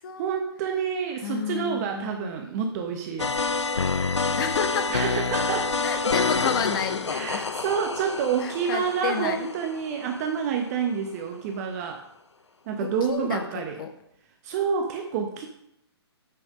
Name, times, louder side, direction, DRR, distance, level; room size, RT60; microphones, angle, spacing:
voice 1, 0.2-3.4 4.9-5.7 7.1-12.0 12.7-13.8 14.4-15.5, right 7 dB, 35° right, 3 dB, 1.1 m, -28 dB
voice 2, 1.2-2.5 4.4-5.0 5.8-7.5 8.4-9.5 12.8-13.9, left 7 dB, 50° left, 8 dB, 1.3 m, -31 dB
sound 1, 3.2-10.4, left 4 dB, 90° left, 0.6 m, -28 dB
7.9 x 7.1 x 5.2 m, 0.76 s
figure-of-eight pair, 130°, 14 cm